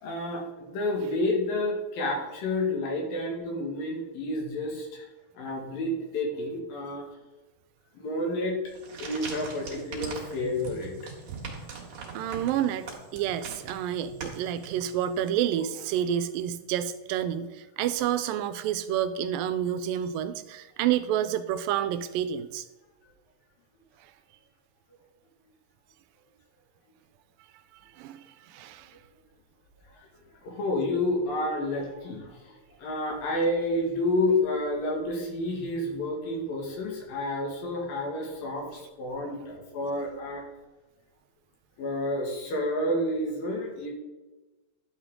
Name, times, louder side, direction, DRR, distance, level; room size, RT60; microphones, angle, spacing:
voice 1, 0.0-5.1 5.4-7.0 8.0-8.6 9.0-10.9 29.9-40.4 41.8-43.9, left 1 dB, 80° left, 0 dB, 3.8 m, -30 dB
sound 1, 8.7-15.2, right 4 dB, 55° right, 2.8 m, -41 dB
voice 2, 12.1-12.9 13.1-22.7 27.7-28.9, right 10 dB, 85° right, 12 dB, 2.3 m, -29 dB
11.5 x 7.2 x 3.8 m, 1.1 s
omnidirectional pair, 4.0 m